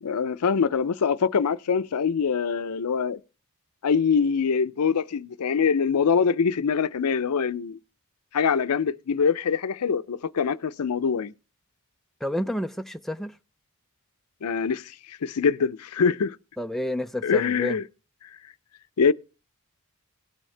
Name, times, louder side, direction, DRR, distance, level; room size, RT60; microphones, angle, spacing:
voice 1, 0.0-3.2 3.8-7.8 8.3-11.3 14.4-16.4 17.2-17.8 19.0-19.1, left 6 dB, 85° left, 0.5 m, -24 dB
voice 2, 12.2-13.3 16.6-17.8, left 1 dB, ahead, 0.4 m, -29 dB
18.0 x 6.3 x 3.3 m
head